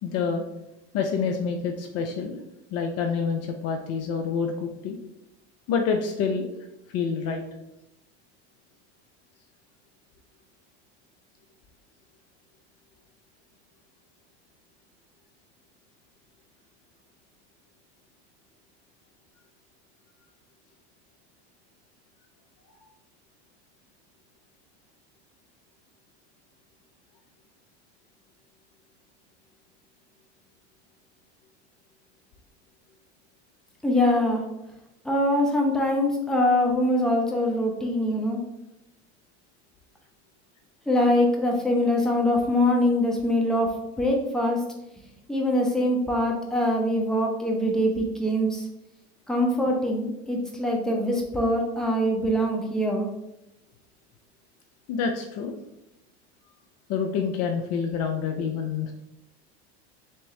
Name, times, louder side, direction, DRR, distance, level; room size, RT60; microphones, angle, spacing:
voice 1, 0.0-0.4 0.9-2.4 2.7-5.0 5.7-6.5 6.9-7.4 54.9-55.5 56.9-58.9, left 6 dB, 45° left, 4 dB, 0.5 m, -27 dB
voice 2, 33.8-34.4 35.0-38.4 40.9-44.6 45.3-48.7 49.3-53.1, left 1 dB, ahead, -1 dB, 0.8 m, -23 dB
3.5 x 3.0 x 3.2 m, 0.86 s
hypercardioid pair, 95°, 34 cm